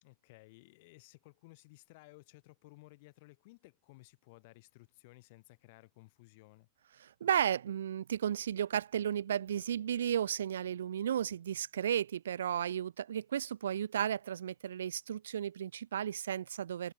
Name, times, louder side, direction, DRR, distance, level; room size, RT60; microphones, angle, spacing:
voice 1, 0.0-6.7, left 24 dB, 50° left, 1.9 m, -58 dB
voice 2, 7.0-16.9, right 9 dB, 65° right, 0.3 m, -34 dB
figure-of-eight pair, 90°, 0 cm